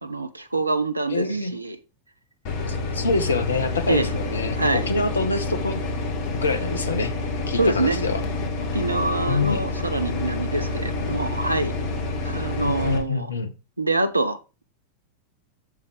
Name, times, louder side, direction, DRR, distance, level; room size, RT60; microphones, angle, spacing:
voice 1, 0.0-1.3 1.5-1.8 3.9-4.1 4.6-4.9 7.6-8.0 8.7-11.7 12.2-13.3 13.8-14.4, right 2 dB, 85° right, 0.8 m, -25 dB
voice 2, 1.1-1.6 2.7-6.1 6.3-7.1 7.5-8.2 9.3-9.7 12.6-13.5, left 3 dB, 70° left, 1.1 m, -26 dB
sound 1, 2.4-13.0, left 3 dB, 45° left, 1.7 m, -28 dB
8.5 x 7.2 x 3.3 m
figure-of-eight pair, 90°, 0 cm